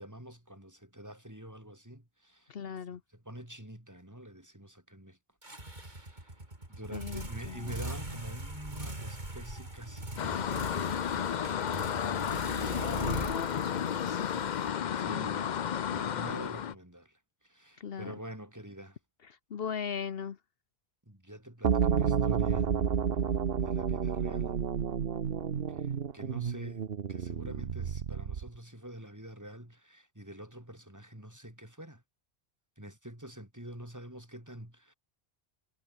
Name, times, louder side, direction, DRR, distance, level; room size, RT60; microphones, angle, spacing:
voice 1, 0.0-2.5 3.1-5.2 5.7-6.4 6.7-11.7 14.9-17.2 17.4-19.0 21.1-22.7 23.6-24.6 25.7-32.0 32.8-34.9, right 1 dB, 15° right, 4.3 m, -47 dB
voice 2, 2.5-3.0 6.9-7.8 12.7-14.3 17.8-18.1 19.3-20.4, left 7 dB, 70° left, 1.1 m, -39 dB
sound 1, 5.4-15.2, right 1 dB, 45° right, 4.7 m, -41 dB
sound 2, 10.2-16.7, left 8 dB, 50° left, 0.7 m, -32 dB
sound 3, 21.6-28.6, right 7 dB, 70° right, 1.2 m, -30 dB
omnidirectional pair, 1.0 m